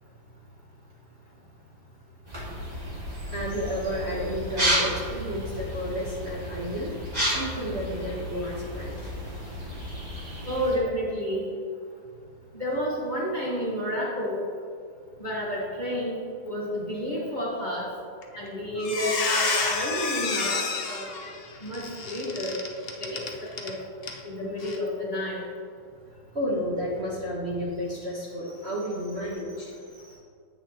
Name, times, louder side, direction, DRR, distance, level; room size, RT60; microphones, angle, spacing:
sound 1, 2.3-10.8, equal, 20° right, 1.9 m, -32 dB
voice 1, 3.3-6.9 7.2-9.1 26.3-29.7, equal, 40° right, -6 dB, 1.2 m, -31 dB
voice 2, 10.4-11.5 12.5-14.4 15.2-16.2 16.4-17.9 18.4-21.1 21.6-22.6 23.0-23.8 24.2-25.4 29.3-29.4, equal, 25° left, -6 dB, 1.3 m, -30 dB
Squeak, 18.2-18.5 18.8-23.7 24.0-24.2 24.6-24.8, left 4 dB, 90° left, 0.5 m, -29 dB
9.8 x 8.2 x 3.0 m, 2.3 s
omnidirectional pair, 2.3 m